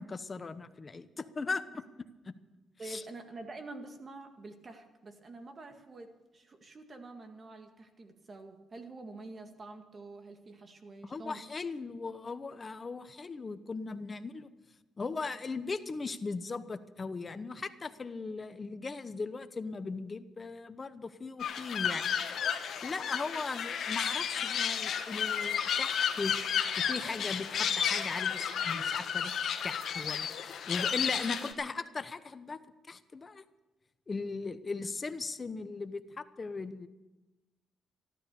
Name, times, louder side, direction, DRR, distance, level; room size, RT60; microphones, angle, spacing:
voice 1, 0.0-1.8 2.3-2.4 2.8-3.0 11.0-14.5 15.0-22.1 22.8-26.4 26.8-32.6 32.9-33.4 34.1-36.9, left 4 dB, 30° left, 12 dB, 0.9 m, -38 dB
voice 2, 2.8-11.4 31.4-31.5, right 3 dB, 35° right, 6 dB, 1.9 m, -47 dB
sound 1, 21.4-31.5, left 8 dB, 65° left, 1.3 m, -32 dB
13.5 x 12.5 x 6.8 m, 1.1 s
cardioid pair, 90°, 0 cm